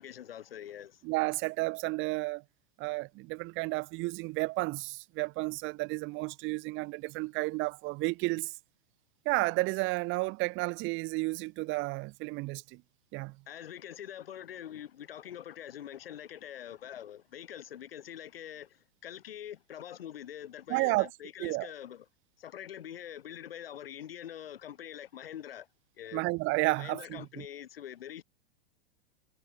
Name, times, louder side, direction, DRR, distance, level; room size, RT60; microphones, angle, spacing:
voice 1, 0.0-1.0 13.5-18.8 19.0-22.0 22.4-25.7 26.0-26.2 26.8-28.2, left 10 dB, 70° left, 3.0 m, -44 dB
voice 2, 1.0-2.4 2.8-8.5 9.2-12.8 13.1-13.3 20.7-21.1 21.4-21.7 26.1-27.4, right 24 dB, 40° right, 3.2 m, -32 dB
hypercardioid pair, 105°, 30 cm